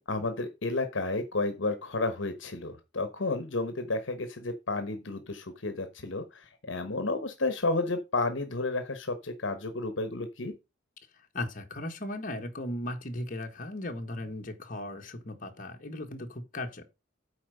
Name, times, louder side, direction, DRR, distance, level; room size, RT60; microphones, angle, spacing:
voice 1, 0.0-10.5, left 2 dB, 70° left, 1.2 m, -32 dB
voice 2, 11.3-16.8, left 1 dB, 45° left, 1.5 m, -37 dB
8.5 x 4.6 x 6.5 m
head